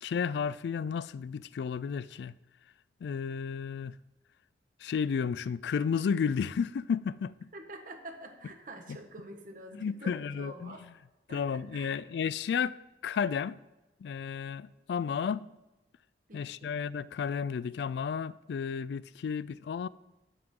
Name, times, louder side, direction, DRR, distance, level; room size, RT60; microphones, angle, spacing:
voice 1, 0.0-2.3 3.0-3.9 4.8-7.3 9.7-10.7 11.3-12.8 13.0-13.6 14.0-15.5 16.3-19.9, left 6 dB, 70° left, 0.3 m, -32 dB
voice 2, 7.5-10.8 11.3-12.0 16.3-16.8, right 1 dB, 50° right, 1.3 m, -47 dB
11.0 x 7.8 x 3.7 m
head